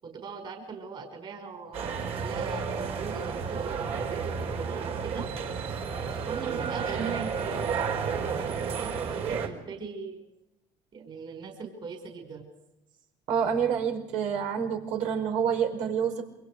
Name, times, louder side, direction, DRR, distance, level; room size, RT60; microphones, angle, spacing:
voice 1, 0.0-5.3 6.1-7.8 8.3-10.2 10.9-12.5, right 5 dB, 40° right, 4 dB, 5.4 m, -40 dB
sound 1, 1.7-9.5, right 6 dB, 55° right, 4.6 m, -31 dB
voice 2, 13.3-16.2, right 7 dB, 70° right, 4 dB, 5.3 m, -27 dB
27.5 x 25.0 x 5.0 m, 0.90 s
cardioid pair, 125°, 13 cm